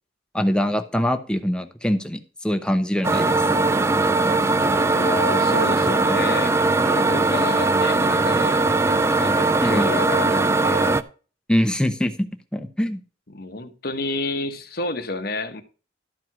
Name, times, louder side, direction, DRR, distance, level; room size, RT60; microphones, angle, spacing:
voice 1, 0.3-3.4 9.6-9.9 11.5-13.0, equal, 5° left, 0.9 m, -23 dB
sound 1, 3.0-11.0, right 3 dB, 15° right, 0.4 m, -20 dB
voice 2, 4.9-6.5 6.8-11.0 13.3-15.6, left 2 dB, 55° left, 1.1 m, -30 dB
12.5 x 4.6 x 5.9 m
head